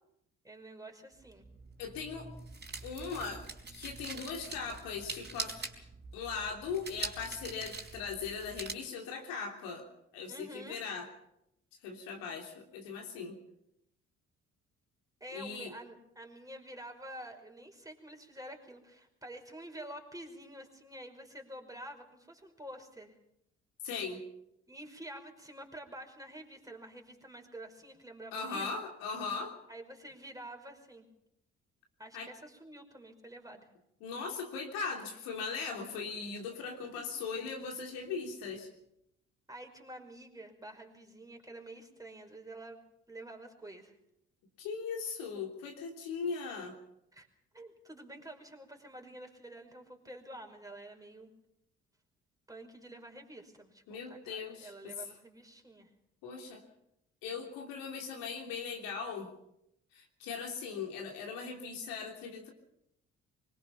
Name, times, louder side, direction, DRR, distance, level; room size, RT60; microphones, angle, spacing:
voice 1, 0.4-1.5 10.3-10.8 15.2-23.2 24.7-28.7 29.7-31.1 32.0-33.7 37.0-37.2 39.5-42.8 43.1-44.0 47.1-47.3 47.5-51.3 52.5-55.9, right 1 dB, 10° right, 4 dB, 5.4 m, -48 dB
sound 1, 1.2-8.7, right 3 dB, 30° right, 4.5 m, -44 dB
voice 2, 1.8-2.3 2.8-5.6 6.1-9.9 10.1-11.1 11.8-13.4 15.3-15.7 23.8-24.2 28.3-29.6 32.1-32.3 34.0-38.7 44.6-46.7 53.9-55.0 56.2-56.6 57.2-59.3 59.9-62.5, left 5 dB, 70° left, 2 dB, 3.4 m, -39 dB
24.5 x 21.5 x 5.9 m, 0.82 s
hypercardioid pair, 45°, 35 cm